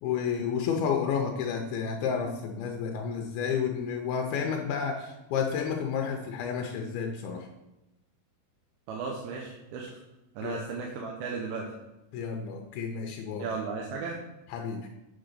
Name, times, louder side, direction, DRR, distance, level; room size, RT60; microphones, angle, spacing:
voice 1, 0.0-7.5 10.4-10.6 12.1-13.5 14.5-14.9, left 6 dB, 85° left, 2 dB, 2.7 m, -31 dB
voice 2, 8.9-10.0 10.4-11.7 13.4-14.2, right 4 dB, 90° right, -1 dB, 2.8 m, -35 dB
8.5 x 3.9 x 6.7 m, 0.98 s
omnidirectional pair, 4.3 m